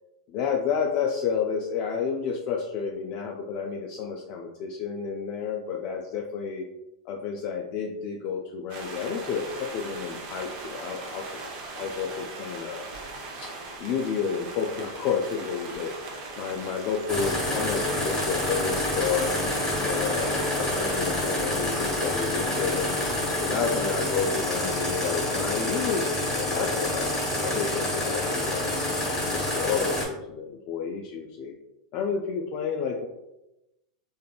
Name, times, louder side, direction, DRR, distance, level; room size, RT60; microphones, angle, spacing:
voice 1, 0.3-6.6 7.1-11.3 11.7-12.9 13.4-13.5 13.8-15.9 16.4-19.3 19.8-22.9 23.4-26.1 26.3-28.8 29.3-31.5 31.9-33.1, left 6 dB, 45° left, 0 dB, 0.3 m, -30 dB
sound 1, 8.7-23.2, right 3 dB, 45° right, 0.6 m, -40 dB
sound 2, 17.1-30.0, left 1 dB, 15° left, 1.3 m, -27 dB
2.9 x 2.6 x 2.2 m, 0.93 s
supercardioid pair, 130°, 3 cm